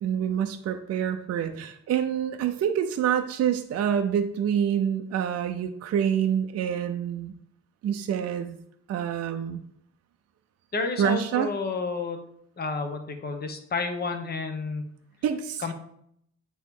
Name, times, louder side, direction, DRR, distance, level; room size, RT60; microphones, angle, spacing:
voice 1, 0.0-7.3 7.8-8.6 8.9-9.6 11.0-11.5 15.2-15.6, right 9 dB, 55° right, 6 dB, 0.5 m, -27 dB
voice 2, 10.7-12.2 12.6-14.9 15.6-15.7, left 4 dB, 35° left, 5 dB, 1.0 m, -30 dB
8.4 x 3.1 x 3.7 m, 0.69 s
cardioid pair, 90°, 30 cm